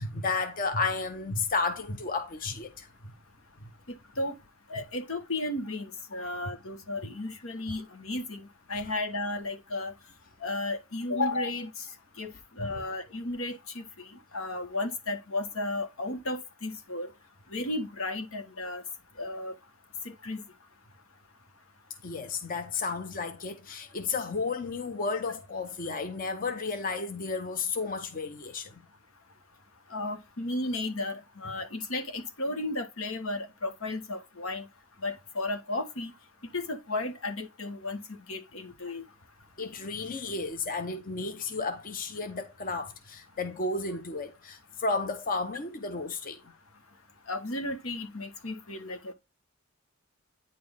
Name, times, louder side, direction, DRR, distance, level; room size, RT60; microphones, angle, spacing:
voice 1, 0.0-2.9 6.1-6.3 12.6-12.8 22.0-28.8 39.6-46.4, left 4 dB, 40° left, 0.9 m, -33 dB
voice 2, 3.9-4.3 4.7-9.9 10.4-11.8 12.2-17.1 17.5-18.8 19.2-19.5 20.0-20.4 29.9-34.6 35.0-36.1 36.5-39.0 47.3-49.1, left 2 dB, 75° left, 1.5 m, -34 dB
9.5 x 4.4 x 3.5 m
head